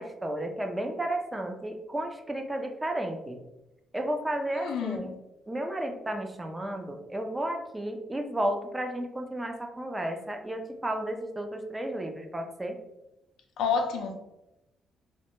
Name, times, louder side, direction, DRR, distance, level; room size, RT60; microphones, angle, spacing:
voice 1, 0.0-3.4 3.9-5.1 5.5-12.7, right 1 dB, 15° right, 0.3 m, -33 dB
voice 2, 4.5-5.1 13.6-14.1, left 6 dB, 85° left, 0.4 m, -29 dB
2.1 x 2.1 x 2.9 m
cardioid pair, 90°, 0 cm